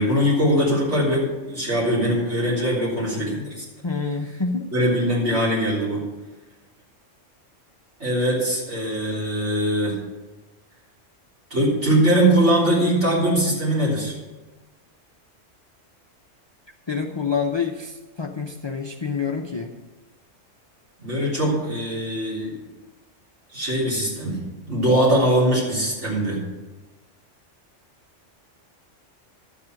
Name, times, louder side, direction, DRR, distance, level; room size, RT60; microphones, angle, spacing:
voice 1, 0.0-3.7 4.7-6.1 8.0-10.0 11.5-14.1 21.0-22.5 23.5-24.4 24.7-26.4, right 1 dB, 65° right, -6 dB, 3.9 m, -21 dB
voice 2, 3.8-4.7 16.9-19.7, left 5 dB, 35° left, 3 dB, 0.4 m, -27 dB
12.0 x 7.3 x 6.3 m, 1.2 s
omnidirectional pair, 1.3 m